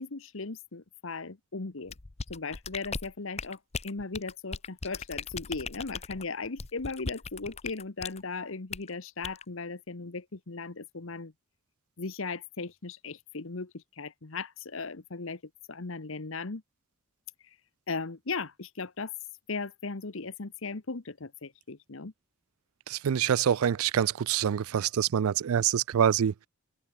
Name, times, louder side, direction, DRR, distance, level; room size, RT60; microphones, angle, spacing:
voice 1, 0.0-1.9 2.3-11.3 12.0-15.4 15.7-16.6 17.4-17.6 17.9-19.1 19.5-22.1, left 4 dB, 65° left, 1.1 m, -37 dB
sound 1, 1.9-8.2 8.7-8.9 9.2-9.4, left 5 dB, 30° left, 0.7 m, -38 dB
voice 2, 22.9-26.3, right 8 dB, 80° right, 0.4 m, -26 dB
head